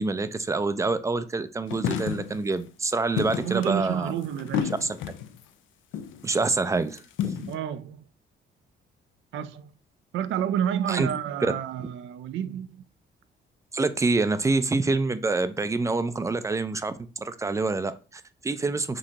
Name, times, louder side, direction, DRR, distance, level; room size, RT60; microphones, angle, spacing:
voice 1, 0.0-4.1 4.8-5.0 6.2-7.5 10.9-11.1 11.4-11.5 11.8-11.9 13.7-19.0, right 3 dB, 15° right, 0.4 m, -26 dB
sound 1, 1.7-2.4 3.2-5.4 5.9-6.3 6.8-7.6, left 9 dB, 75° left, 0.4 m, -30 dB
voice 2, 3.4-4.7 7.5-8.0 9.3-9.7 10.1-12.8, right 9 dB, 75° right, 0.4 m, -29 dB
5.2 x 2.8 x 2.8 m
cardioid pair, 90°, 20 cm